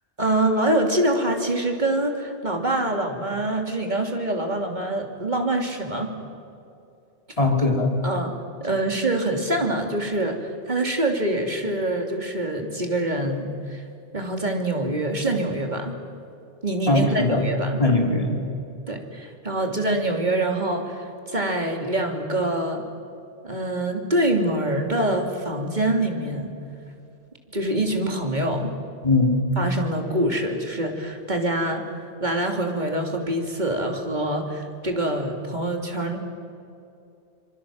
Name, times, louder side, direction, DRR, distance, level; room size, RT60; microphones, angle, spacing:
voice 1, 0.2-6.1 8.0-8.3 8.6-13.8 14.1-16.0 16.6-17.8 18.9-22.8 23.4-26.5 27.5-28.7 29.6-31.8 32.2-36.2, right 1 dB, 40° right, 3 dB, 3.2 m, -25 dB
voice 2, 7.4-7.9 16.9-17.5 17.8-18.4 29.0-29.4, left 2 dB, 30° left, 1 dB, 3.9 m, -20 dB
26.0 x 23.0 x 7.7 m, 2.6 s
omnidirectional pair, 1.2 m